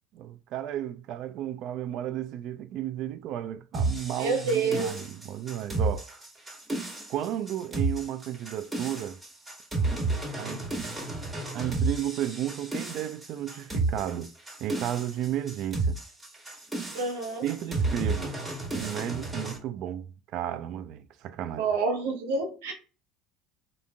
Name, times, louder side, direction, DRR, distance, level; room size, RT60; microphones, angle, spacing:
voice 1, 0.1-6.1 7.1-9.2 10.4-10.6 11.5-14.3 14.6-16.0 17.4-18.4 18.7-20.1 20.3-21.7, right 11 dB, 60° right, 0.4 m, -33 dB
sound 1, 3.7-19.6, right 3 dB, 15° right, 1.6 m, -32 dB
voice 2, 4.2-4.9 16.9-17.4 21.6-22.7, right 4 dB, 80° right, 1.0 m, -28 dB
3.7 x 2.4 x 2.2 m
hypercardioid pair, 80°, 0 cm